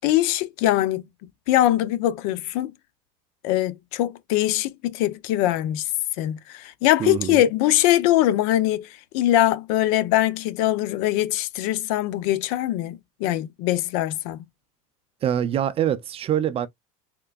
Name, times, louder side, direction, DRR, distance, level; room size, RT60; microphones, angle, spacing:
voice 1, 0.0-1.0 1.5-2.7 3.4-5.8 6.2-8.9 9.1-14.4, left 14 dB, 65° left, 0.6 m, -22 dB
voice 2, 7.0-7.4 15.2-16.7, right 10 dB, 30° right, 0.4 m, -24 dB
3.8 x 3.3 x 2.3 m
supercardioid pair, 125°, 19 cm